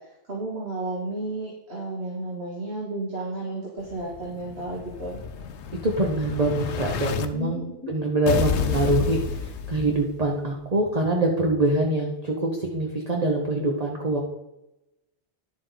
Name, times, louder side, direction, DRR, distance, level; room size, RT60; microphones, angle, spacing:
voice 1, 0.3-5.2 7.3-7.9, right 2 dB, 60° right, -4 dB, 2.3 m, -32 dB
Explosion, 3.9-7.3 8.3-10.3, left 6 dB, 75° left, 1.0 m, -30 dB
voice 2, 5.8-14.2, right 2 dB, 35° right, 0 dB, 1.1 m, -24 dB
10.5 x 7.5 x 4.0 m, 0.94 s
omnidirectional pair, 1.2 m